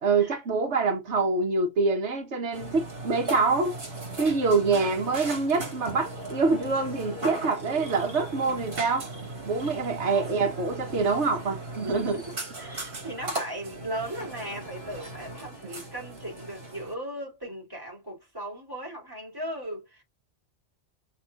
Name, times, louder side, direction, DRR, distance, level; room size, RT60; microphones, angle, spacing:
voice 1, 0.0-3.8 4.2-9.1 9.5-12.2, right 4 dB, 85° right, 1.4 m, -25 dB
Burping eructation, 2.5-16.9, right 2 dB, 60° right, 2.1 m, -38 dB
voice 2, 10.0-10.7 11.8-20.0, right 1 dB, 20° right, 3.7 m, -38 dB
6.0 x 3.6 x 2.5 m
omnidirectional pair, 1.1 m